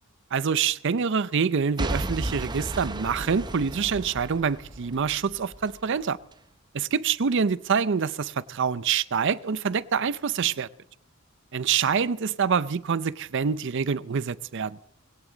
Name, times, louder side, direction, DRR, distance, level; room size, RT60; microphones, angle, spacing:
voice 1, 0.3-6.2 6.7-10.7 11.5-14.8, right 6 dB, 60° right, 0.5 m, -26 dB
Boom / Shatter / Crushing, 1.8-5.8 6.3-6.4, right 1 dB, 20° right, 0.8 m, -33 dB
21.0 x 17.0 x 3.9 m
head